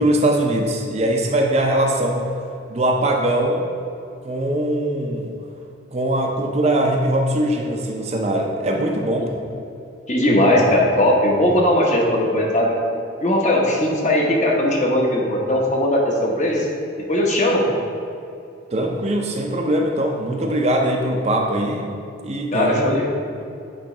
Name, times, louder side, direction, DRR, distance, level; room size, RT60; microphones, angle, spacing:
voice 1, 0.0-2.3 2.7-3.7 4.2-5.3 5.9-9.4 18.7-21.9 22.2-23.0, right 1 dB, 35° right, 1 dB, 0.5 m, -21 dB
voice 2, 10.1-12.8 13.2-16.7 17.1-17.6 22.5-23.1, left 1 dB, 35° left, -2 dB, 0.9 m, -18 dB
8.7 x 3.1 x 4.8 m, 2.6 s
head